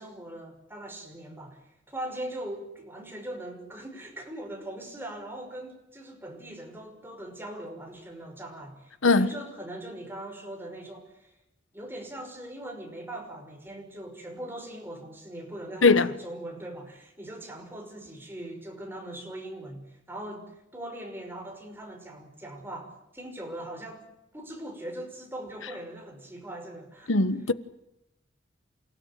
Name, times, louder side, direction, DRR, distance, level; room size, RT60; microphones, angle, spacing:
voice 1, 0.0-11.3 11.7-24.0 24.3-27.1, right 1 dB, 10° right, 5.8 m, -40 dB
voice 2, 27.1-27.5, left 3 dB, 80° left, 1.3 m, -20 dB
29.0 x 16.5 x 9.2 m
head